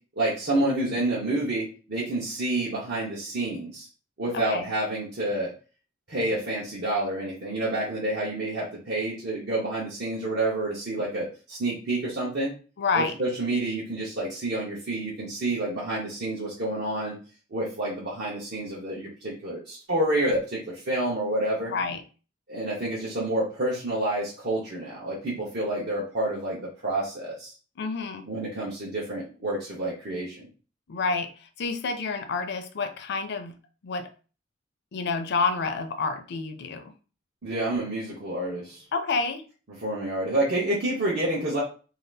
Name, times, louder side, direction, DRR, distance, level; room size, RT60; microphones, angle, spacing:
voice 1, 0.2-3.9 4.2-5.5 6.1-12.5 12.9-17.2 17.5-21.7 22.5-27.5 28.3-30.5 37.4-38.9 39.8-41.6, right 1 dB, 60° right, -6 dB, 0.9 m, -28 dB
voice 2, 12.8-13.1 21.7-22.0 27.8-28.3 30.9-33.5 33.8-34.1 34.9-36.9 38.9-39.4, left 4 dB, 60° left, 8 dB, 0.5 m, -29 dB
2.7 x 2.4 x 3.2 m, 0.36 s
head